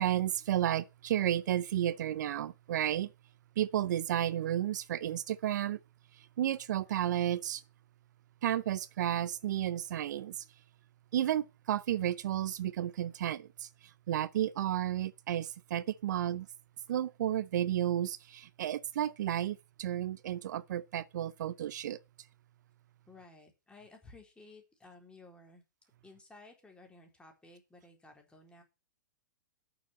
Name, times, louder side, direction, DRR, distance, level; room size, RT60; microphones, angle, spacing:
voice 1, 0.0-3.1 3.6-5.8 6.1-7.6 8.4-10.5 11.1-16.5 16.9-22.0, right 11 dB, 65° right, 0.6 m, -32 dB
voice 2, 23.1-25.6 26.0-28.6, left 2 dB, 10° left, 4.0 m, -55 dB
9.2 x 7.0 x 7.2 m
hypercardioid pair, 115°, 10 cm